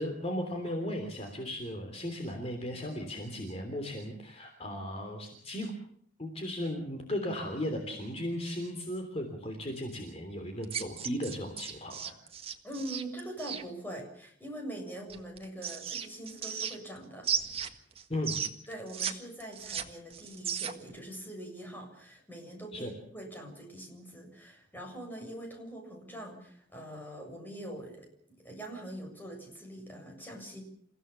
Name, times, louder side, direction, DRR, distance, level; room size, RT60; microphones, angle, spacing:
voice 1, 0.0-5.7 6.2-12.1 18.1-18.4 22.7-22.9, left 1 dB, 30° left, 4 dB, 3.3 m, -36 dB
sound 1, 10.6-13.6 15.1-17.0 17.2-19.1 19.4-20.9, right 7 dB, 30° right, 1.7 m, -35 dB
voice 2, 12.6-17.3 18.7-28.1 28.4-30.6, right 1 dB, 10° left, 1 dB, 7.3 m, -43 dB
29.5 x 16.5 x 7.1 m, 0.63 s
head